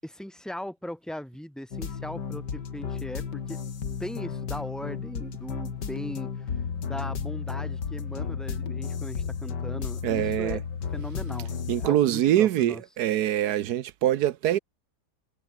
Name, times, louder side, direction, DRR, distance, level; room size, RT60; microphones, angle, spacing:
voice 1, 0.0-3.6 4.0-6.6 6.8-10.6 10.9-12.8, equal, ahead, 6.9 m, -39 dB
sound 1, 1.7-11.9, left 6 dB, 85° left, 2.6 m, -33 dB
voice 2, 10.0-10.6 11.7-14.6, right 12 dB, 70° right, 1.2 m, -24 dB
omnidirectional pair, 1.8 m